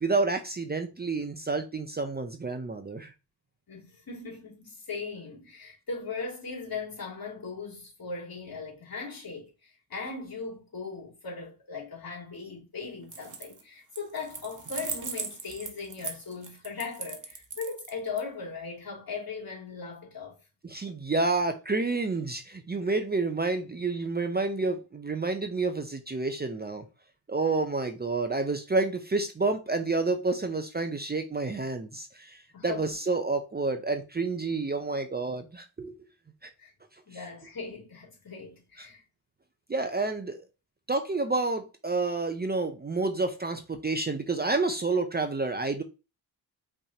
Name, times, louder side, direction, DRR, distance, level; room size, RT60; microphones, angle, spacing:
voice 1, 0.0-3.1 20.6-26.8 27.3-35.9 38.8-38.9 39.7-40.4 40.9-45.8, right 3 dB, 25° right, 0.6 m, -29 dB
voice 2, 3.7-20.4 32.5-32.8 36.6-36.7 37.1-39.0, left 4 dB, 55° left, 2.9 m, -38 dB
sound 1, 13.0-13.6 13.9-18.2, right 5 dB, 45° right, 1.1 m, -38 dB
5.5 x 3.4 x 2.8 m
cardioid pair, 85°, 41 cm